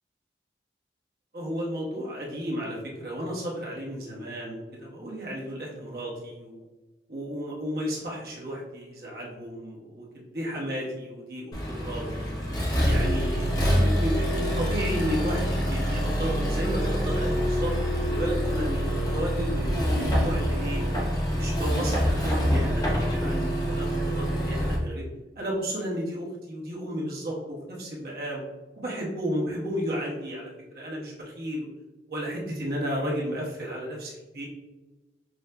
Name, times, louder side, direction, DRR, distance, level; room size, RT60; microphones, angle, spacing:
voice 1, 1.3-6.6 7.1-12.3 12.8-13.5 13.8-17.7 18.0-20.8 21.3-25.0 25.4-28.4 28.8-31.7 32.1-34.5, equal, 60° right, -4 dB, 1.2 m, -33 dB
Accelerating revving vroom, 11.5-24.8, equal, 20° left, 0.8 m, -26 dB
6.1 x 2.6 x 2.2 m, 1.2 s
head